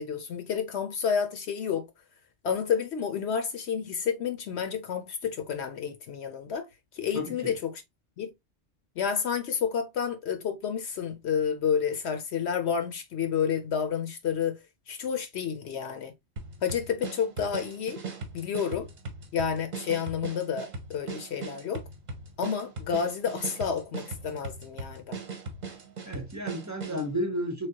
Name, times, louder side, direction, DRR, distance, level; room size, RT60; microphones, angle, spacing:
voice 1, 0.0-1.9 2.4-6.7 6.9-7.8 8.2-8.3 9.0-14.6 14.9-16.1 16.6-18.0 18.3-18.9 19.3-21.8 22.4-25.2, left 7 dB, 70° left, 0.9 m, -30 dB
voice 2, 7.1-7.5 26.0-27.7, equal, 20° right, 0.7 m, -32 dB
sound 1, 16.4-27.1, right 3 dB, 40° right, 0.8 m, -39 dB
3.4 x 3.3 x 2.7 m
omnidirectional pair, 1.2 m